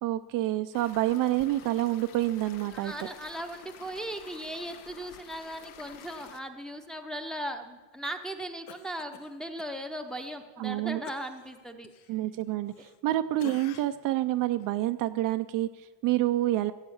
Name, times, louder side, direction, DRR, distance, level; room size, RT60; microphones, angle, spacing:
voice 1, 0.0-2.9 10.6-11.0 12.1-16.7, right 15 dB, 50° right, 9 dB, 0.5 m, -28 dB
sound 1, 0.7-6.4, left 10 dB, 80° left, 1.2 m, -50 dB
voice 2, 2.7-11.9, right 1 dB, ahead, 4 dB, 0.7 m, -38 dB
Cough, 8.7-9.7 10.1-10.2 11.0-13.1 13.4-14.1 14.6-14.7, left 11 dB, 60° left, 0.8 m, -49 dB
16.0 x 8.1 x 7.2 m, 1.3 s
cardioid pair, 160°, 44 cm